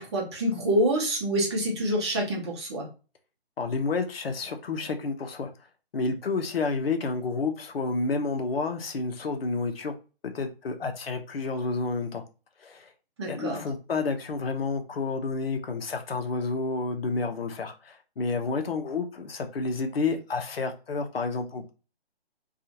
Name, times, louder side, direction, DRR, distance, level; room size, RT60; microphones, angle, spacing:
voice 1, 0.0-2.9 13.2-13.6, right 1 dB, 25° right, -1 dB, 0.8 m, -27 dB
voice 2, 3.6-5.5 5.9-9.9 10.3-12.2 12.6-12.9 13.3-21.7, left 4 dB, 65° left, 5 dB, 0.7 m, -30 dB
2.7 x 2.4 x 2.8 m, 0.32 s
figure-of-eight pair, 145°, 31 cm